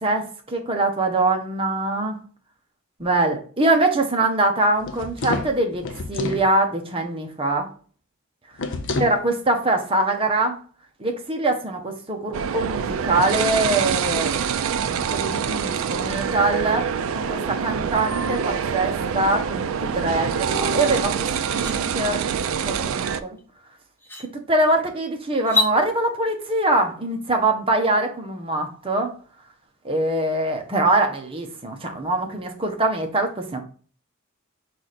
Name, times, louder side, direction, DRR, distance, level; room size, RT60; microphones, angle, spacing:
voice 1, 0.0-2.2 3.0-5.8 6.1-7.7 9.0-10.6 11.0-14.3 14.9-16.9 17.1-21.1 21.6-22.2 22.6-22.8 23.2-23.4 24.5-29.1 29.8-33.6, right 2 dB, 25° right, 3 dB, 0.8 m, -23 dB
sound 1, 4.8-6.5 8.6-9.2, left 3 dB, 60° left, 0.5 m, -29 dB
sound 2, 12.3-23.2, right 7 dB, 75° right, 0.4 m, -25 dB
sound 3, 20.8-20.9 21.3-21.7 23.4-23.5 24.0-24.3 25.4-25.7, left 3 dB, 10° left, 0.9 m, -25 dB
4.7 x 2.5 x 4.1 m, 0.42 s
head